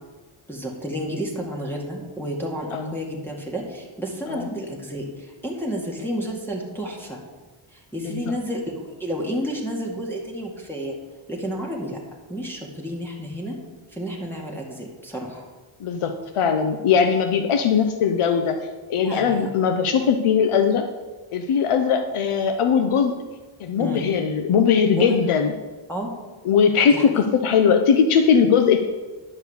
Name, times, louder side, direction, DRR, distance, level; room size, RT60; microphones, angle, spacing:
voice 1, 0.5-7.2 7.7-10.9 11.3-12.0 12.3-13.6 13.9-15.4 19.0-19.5 23.8-24.0 24.9-25.2 25.9-26.1 26.8-27.2, equal, 5° left, -2 dB, 2.0 m, -31 dB
voice 2, 8.0-8.3 15.8-18.6 18.9-20.8 21.3-23.1 23.6-25.5 26.4-28.8, left 6 dB, 75° left, 6 dB, 0.9 m, -20 dB
11.0 x 4.7 x 8.1 m, 1.3 s
wide cardioid pair, 120°, 50 cm